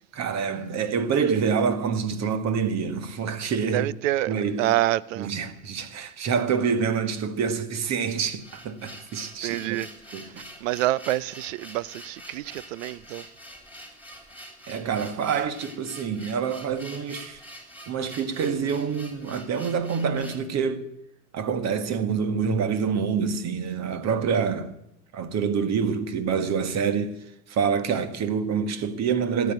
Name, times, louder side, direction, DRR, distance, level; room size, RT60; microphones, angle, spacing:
voice 1, 0.1-3.9 4.3-4.7 5.2-9.8 10.1-10.5 14.7-17.4 17.9-20.9 21.3-24.7 25.1-27.2 27.5-29.5, right 6 dB, 40° right, 1.6 m, -26 dB
voice 2, 3.7-5.3 9.4-9.9 10.6-13.2, right 16 dB, 60° right, 0.7 m, -27 dB
sound 1, 8.4-20.5, equal, 5° right, 3.8 m, -45 dB
13.5 x 9.6 x 8.9 m
figure-of-eight pair, 80°, 43 cm